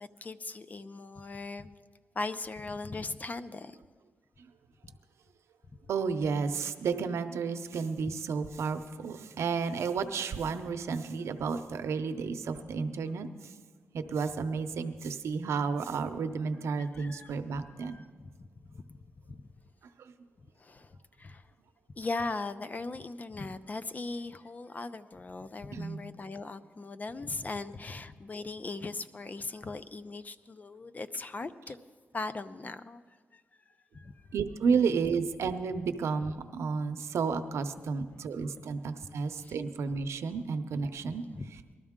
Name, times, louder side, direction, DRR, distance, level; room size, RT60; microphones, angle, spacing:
voice 1, 0.0-1.7 2.1-3.8 4.8-4.9 8.1-8.2 16.8-19.0 19.3-19.4 20.6-21.5 22.0-31.8 32.1-33.0 33.3-33.4 33.9-34.3 39.4-39.6 41.1-41.5, left 3 dB, 35° left, 12 dB, 0.6 m, -39 dB
voice 2, 5.9-13.3 13.9-17.9 20.0-20.1 25.7-26.0 34.3-41.2, right 5 dB, 85° right, 8 dB, 0.7 m, -32 dB
20.0 x 12.5 x 3.7 m, 1.5 s
cardioid pair, 80°, 5 cm